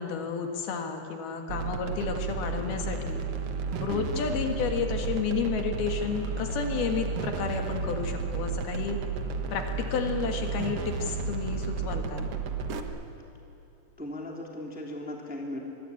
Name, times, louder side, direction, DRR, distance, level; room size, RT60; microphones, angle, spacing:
voice 1, 0.0-3.2 3.8-9.0 9.5-12.3, left 6 dB, 70° left, 4 dB, 3.5 m, -31 dB
sound 1, 1.5-12.8, right 5 dB, 85° right, 1.3 m, -32 dB
voice 2, 3.9-4.2 14.0-15.6, left 1 dB, 5° right, -1 dB, 2.3 m, -37 dB
25.0 x 22.0 x 8.6 m, 2.9 s
omnidirectional pair, 4.8 m